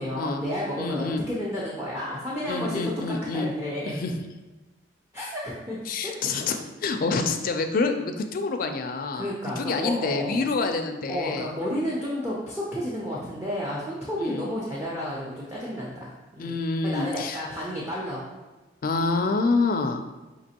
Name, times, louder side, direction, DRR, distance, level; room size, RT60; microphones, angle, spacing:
voice 1, 0.0-2.9 3.3-3.9 5.1-5.8 6.0-6.1 9.1-10.4 11.1-16.6 16.9-18.2, equal, 15° right, -6 dB, 0.5 m, -31 dB
voice 2, 0.8-1.2 2.5-3.5 3.9-4.2 5.9-11.5 14.2-14.5 16.4-17.4 18.8-20.0, left 3 dB, 50° left, 6 dB, 0.4 m, -27 dB
5.2 x 2.9 x 2.8 m, 1.2 s
head